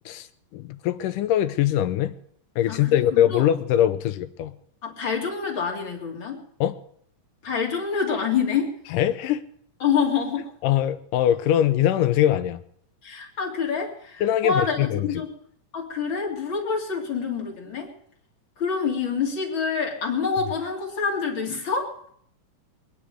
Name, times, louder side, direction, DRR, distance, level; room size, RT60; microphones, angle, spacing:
voice 1, 0.5-2.2 2.6-4.5 6.6-6.8 8.9-9.5 10.6-12.6 14.2-15.2, left 11 dB, 80° left, 12 dB, 2.3 m, -22 dB
voice 2, 2.7-3.5 4.8-6.4 7.4-8.7 9.8-10.4 13.0-15.3 15.7-17.9 18.6-21.9, left 6 dB, 40° left, 0 dB, 3.0 m, -27 dB
23.5 x 10.0 x 5.0 m, 0.64 s
omnidirectional pair, 3.9 m